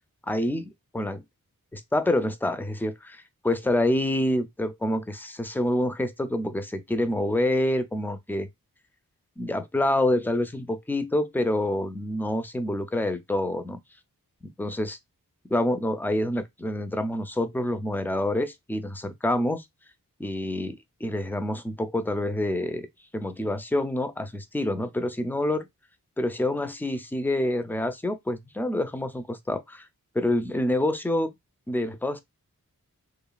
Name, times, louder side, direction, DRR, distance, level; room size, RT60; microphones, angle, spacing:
voice 1, 0.3-1.2 1.7-8.5 9.4-13.8 14.4-15.0 15.5-19.6 20.2-22.9 23.1-25.7 26.2-29.9 30.1-31.3 31.7-32.2, left 1 dB, 5° left, 0.4 m, -27 dB
3.0 x 2.2 x 2.3 m
wide cardioid pair, 55°, 35 cm